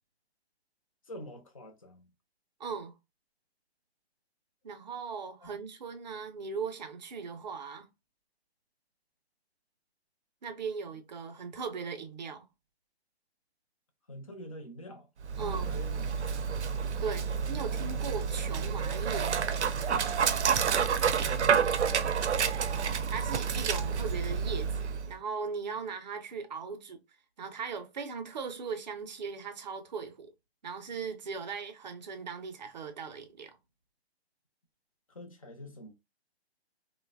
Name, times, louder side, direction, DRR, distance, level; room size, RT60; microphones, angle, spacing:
voice 1, 1.0-2.1 5.4-5.6 14.1-15.1 15.4-16.1 21.1-21.9 23.7-23.9 35.1-35.9, equal, 35° left, 0.4 m, -46 dB
voice 2, 2.6-2.9 4.6-7.9 10.4-12.5 15.4-15.7 17.0-19.5 22.6-27.0 27.4-30.3 30.6-33.5, right 5 dB, 40° right, 0.5 m, -38 dB
Dog, 15.2-25.1, right 6 dB, 90° right, 0.5 m, -29 dB
2.9 x 2.1 x 2.3 m
hypercardioid pair, 160°, 33 cm